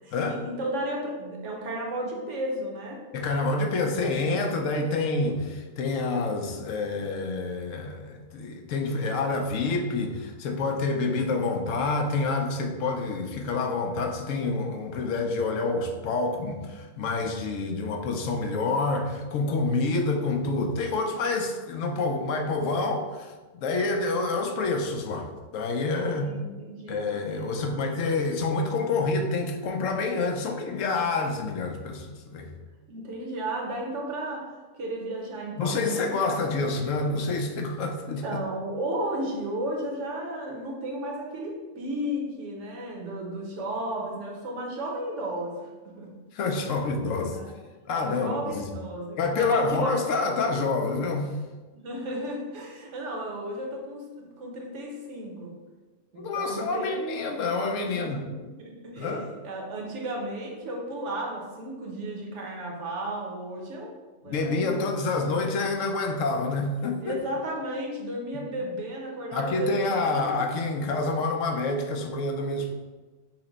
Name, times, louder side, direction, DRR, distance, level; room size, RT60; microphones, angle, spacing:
voice 1, 0.0-3.1 26.2-27.1 27.5-28.0 32.9-36.8 38.2-45.7 46.0-46.2 46.6-46.8 47.2-47.6 48.0-50.0 51.7-55.6 56.1-57.0 57.8-58.3 58.6-59.1 59.4-63.9 64.2-64.8 65.1-65.4 67.0-70.4, right 1 dB, 70° right, -1 dB, 1.2 m, -34 dB
voice 2, 3.1-26.3 26.9-32.5 35.6-38.2 46.3-47.4 47.9-48.7 49.2-51.3 56.2-58.2 59.0-59.3 64.2-67.2 69.3-72.7, left 3 dB, 85° left, 3 dB, 1.0 m, -27 dB
5.8 x 2.1 x 3.9 m, 1.3 s
omnidirectional pair, 1.3 m